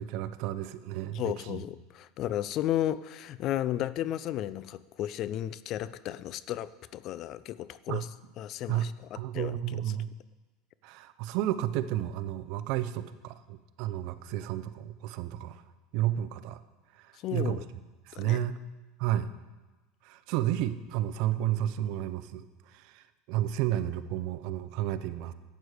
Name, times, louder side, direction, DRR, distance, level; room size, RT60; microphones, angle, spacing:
voice 1, 0.0-1.6 7.9-8.0 8.7-8.9 9.1-10.1 10.8-15.6 15.9-16.6 16.9-17.6 18.1-18.5 19.0-19.3 20.0-25.3, right 12 dB, 60° right, 13 dB, 0.6 m, -32 dB
voice 2, 1.1-8.1 8.4-9.5 17.2-17.6 18.1-18.4, left 12 dB, 45° left, 17 dB, 0.4 m, -33 dB
12.0 x 8.1 x 4.9 m, 1.2 s
supercardioid pair, 135°, 0 cm